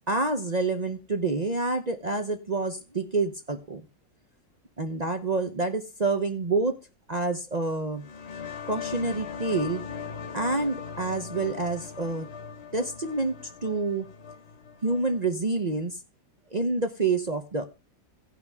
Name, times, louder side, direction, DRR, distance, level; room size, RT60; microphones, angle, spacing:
voice 1, 0.1-3.8 4.8-6.7 7.1-8.0 8.7-9.8 10.3-12.3 12.7-13.4 13.6-14.1 14.8-16.0 16.5-17.7, right 3 dB, 45° right, 6 dB, 0.5 m, -27 dB
sound 1, 8.0-15.3, left 6 dB, 45° left, 1.1 m, -39 dB
17.0 x 5.8 x 3.5 m, 0.29 s
omnidirectional pair, 2.0 m